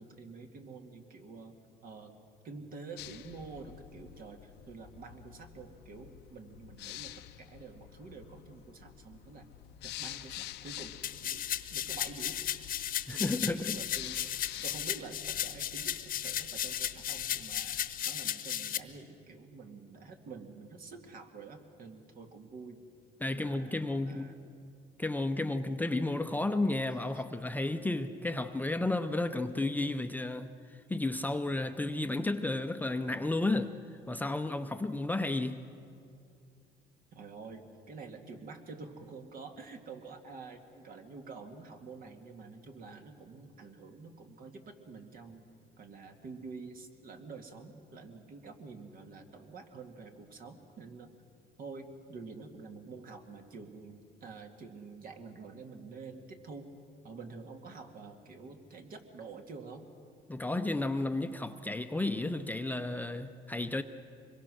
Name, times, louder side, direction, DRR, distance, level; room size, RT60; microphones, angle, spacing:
voice 1, 0.0-1.5 1.8-2.1 2.4-9.4 9.8-11.4 11.7-14.4 14.6-17.8 18.1-22.8 23.3-24.5 37.1-45.4 45.8-51.1 51.6-56.7 57.0-59.8, right 4 dB, 60° right, 4 dB, 2.2 m, -48 dB
sound 1, 3.0-18.1, left 14 dB, 85° left, 0.7 m, -49 dB
sound 2, 11.0-18.8, left 11 dB, 55° left, 1.0 m, -35 dB
voice 2, 13.1-13.8 23.2-24.3 25.0-30.5 30.9-33.7 34.1-35.6 60.3-63.8, left 2 dB, 10° left, 7 dB, 0.7 m, -32 dB
25.0 x 22.0 x 6.3 m, 2.4 s
cardioid pair, 110°, 17 cm